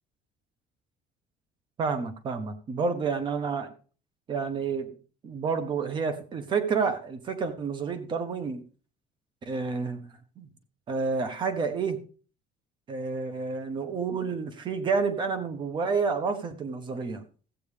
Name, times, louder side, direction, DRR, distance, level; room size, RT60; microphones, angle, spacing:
voice 1, 1.8-3.7 4.3-5.0 5.2-8.6 9.4-10.1 10.4-10.5 10.9-12.0 12.9-17.2, right 5 dB, 30° right, 10 dB, 1.1 m, -29 dB
14.5 x 8.5 x 3.4 m, 0.38 s
cardioid pair, 175°, 16 cm